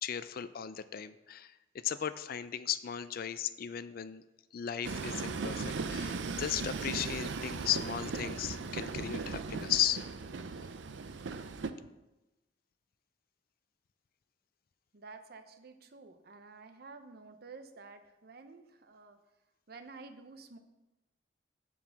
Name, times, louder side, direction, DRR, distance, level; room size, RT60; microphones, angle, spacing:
voice 1, 0.0-1.6 1.8-4.2 4.5-10.0, left 10 dB, 55° left, 13 dB, 0.4 m, -36 dB
Train, 4.8-11.7, right 4 dB, 90° right, 0.5 m, -38 dB
voice 2, 14.9-19.2 19.7-20.6, right 4 dB, 60° right, 8 dB, 0.8 m, -51 dB
7.5 x 4.7 x 7.0 m, 1.0 s
head